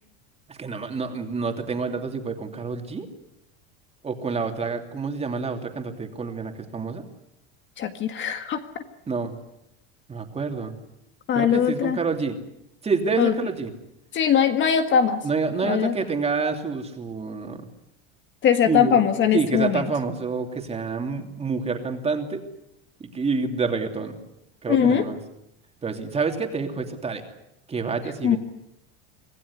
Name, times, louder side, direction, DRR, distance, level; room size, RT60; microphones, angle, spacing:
voice 1, 0.5-3.1 4.0-7.0 9.1-9.3 10.1-10.7 11.3-12.3 12.8-13.7 15.2-17.6 18.7-19.0 19.3-22.4 23.0-24.2 24.6-25.2 25.8-27.2 27.7-28.4, right 4 dB, 20° right, 5 dB, 2.9 m, -28 dB
voice 2, 7.8-8.6 11.3-12.0 13.2-13.3 14.1-15.2 15.6-15.9 18.4-19.9 24.7-25.0 28.2-28.4, left 8 dB, 35° left, 8 dB, 1.7 m, -21 dB
25.5 x 16.5 x 9.7 m, 0.85 s
supercardioid pair, 140°, 33 cm